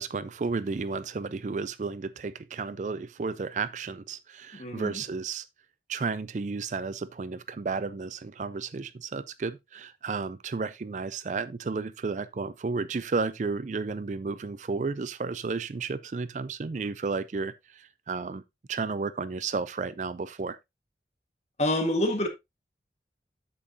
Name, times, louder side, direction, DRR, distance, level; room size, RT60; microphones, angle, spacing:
voice 1, 0.0-5.5 5.9-18.4 18.7-20.6, right 4 dB, 45° right, 0.4 m, -32 dB
voice 2, 4.5-5.0 21.6-22.3, left 1 dB, 40° left, 1.6 m, -27 dB
8.5 x 7.5 x 2.7 m
head